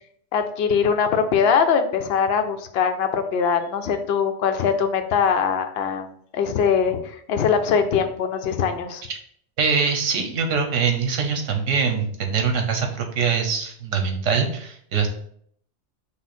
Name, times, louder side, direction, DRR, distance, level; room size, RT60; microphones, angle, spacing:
voice 1, 0.3-9.0, left 6 dB, 65° left, 7 dB, 0.7 m, -22 dB
voice 2, 9.6-15.1, right 5 dB, 85° right, 4 dB, 1.2 m, -23 dB
5.7 x 2.1 x 4.2 m, 0.64 s
omnidirectional pair, 1.2 m